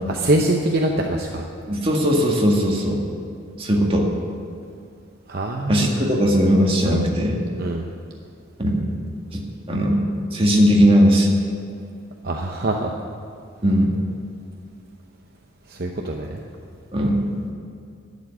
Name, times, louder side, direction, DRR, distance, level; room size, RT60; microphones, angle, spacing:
voice 1, 0.1-1.4 5.3-5.9 7.6-7.9 12.2-12.9 15.7-16.4, right 1 dB, 50° right, 1 dB, 0.8 m, -23 dB
voice 2, 1.7-3.0 3.6-4.1 5.7-7.4 8.6-8.8 9.3-9.4 9.7-10.0 10.3-11.3 13.6-13.9 16.9-17.2, equal, 25° right, -1 dB, 1.8 m, -18 dB
11.5 x 7.4 x 9.9 m, 2.4 s
head